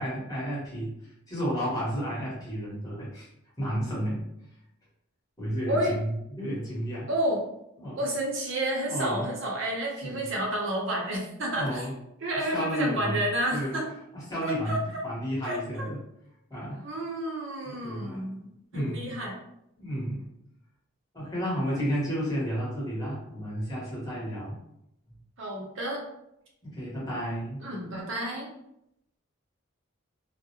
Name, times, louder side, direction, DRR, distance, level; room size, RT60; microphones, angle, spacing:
voice 1, 0.0-3.3 3.6-4.2 5.4-7.1 7.8-8.0 8.9-9.3 10.0-10.3 11.5-11.9 12.3-13.2 13.5-13.8 14.1-16.0 16.5-16.9 17.6-18.2 18.7-19.1 19.8-20.2 21.1-24.6 26.6-27.6, equal, 15° left, -8 dB, 1.0 m, -32 dB
voice 2, 7.1-7.4 8.0-11.9 12.2-13.9 14.4-14.8 15.4-15.6 16.8-18.5 18.7-19.4 25.4-26.0 27.6-28.5, right 1 dB, 60° right, -2 dB, 0.7 m, -30 dB
2.3 x 2.1 x 2.8 m, 0.80 s
head